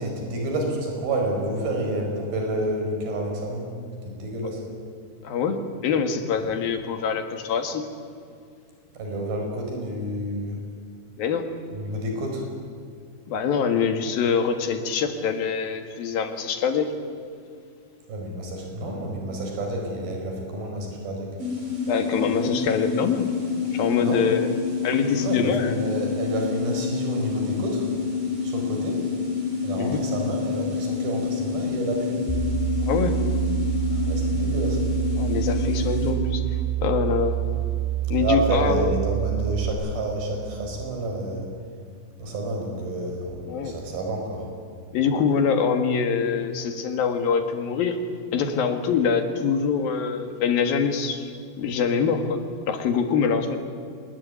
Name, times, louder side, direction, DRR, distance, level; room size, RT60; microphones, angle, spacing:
voice 1, 0.0-3.7 4.0-4.6 8.9-10.6 11.7-12.5 18.1-21.3 23.7-24.2 25.1-27.9 28.4-29.0 29.6-32.2 33.9-34.8 38.1-41.5 42.2-44.5, right 1 dB, 70° right, 2 dB, 6.6 m, -29 dB
voice 2, 5.2-7.8 11.2-11.5 13.3-16.9 21.9-23.3 23.7-24.5 24.8-25.8 29.7-30.0 32.8-33.2 35.2-37.3 38.1-38.9 43.5-43.8 44.9-48.0 48.3-51.2 51.6-52.4 52.7-53.6, left 6 dB, 70° left, 7 dB, 3.5 m, -24 dB
sound 1, 21.4-36.1, left 6 dB, 35° right, 5.2 m, -28 dB
sound 2, 32.3-39.7, right 13 dB, ahead, 7.0 m, -26 dB
25.5 x 20.5 x 9.5 m, 2.3 s
omnidirectional pair, 4.4 m